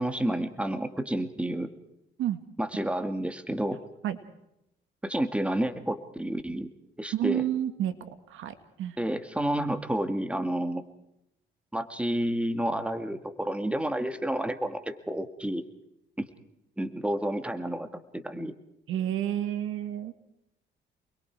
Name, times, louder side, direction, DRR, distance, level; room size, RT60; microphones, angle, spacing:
voice 1, 0.0-1.7 2.6-3.8 5.0-6.7 7.0-7.4 9.0-10.8 11.7-15.6 16.2-16.3 16.8-17.9 18.1-18.5, right 1 dB, 5° right, 8 dB, 2.0 m, -30 dB
voice 2, 7.1-7.9 8.3-9.0 18.9-20.1, right 11 dB, 85° right, 10 dB, 1.9 m, -30 dB
29.0 x 21.5 x 4.7 m, 0.82 s
cardioid pair, 90°, 20 cm